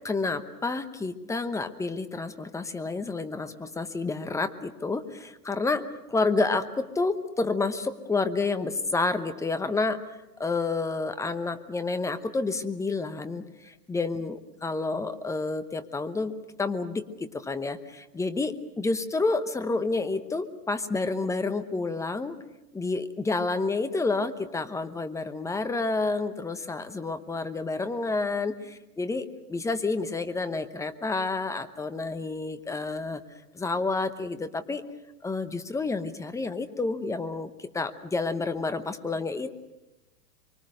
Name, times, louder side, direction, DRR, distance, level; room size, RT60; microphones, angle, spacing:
voice 1, 0.0-10.0 10.4-22.4 22.7-33.2 33.5-34.8 35.2-39.6, left 3 dB, 5° left, 10 dB, 0.9 m, -29 dB
25.5 x 24.0 x 6.5 m, 0.99 s
hypercardioid pair, 130°, 49 cm